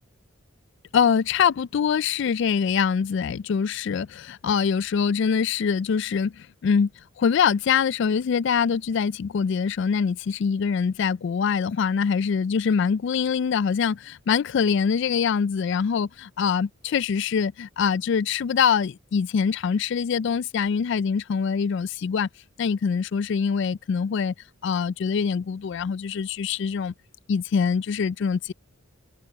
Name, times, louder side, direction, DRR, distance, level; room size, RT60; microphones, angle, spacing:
voice 1, 0.9-6.9 7.2-22.3 22.6-24.3 24.6-26.9 27.3-28.5, left 6 dB, 55° left, 0.3 m, -24 dB
head